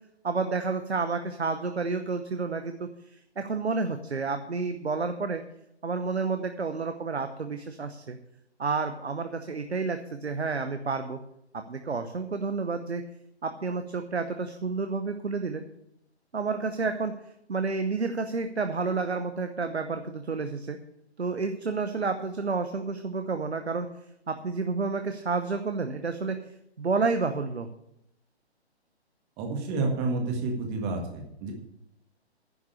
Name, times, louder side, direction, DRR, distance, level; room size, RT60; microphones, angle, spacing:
voice 1, 0.2-5.4 5.8-8.2 8.6-11.2 11.5-13.0 13.4-15.6 16.3-17.1 17.5-20.8 21.2-23.9 24.3-26.4 26.8-27.7, right 4 dB, 75° right, 8 dB, 1.0 m, -30 dB
voice 2, 29.4-31.5, right 3 dB, 20° right, 2 dB, 1.8 m, -29 dB
10.5 x 6.1 x 8.5 m, 0.80 s
figure-of-eight pair, 135°, 33 cm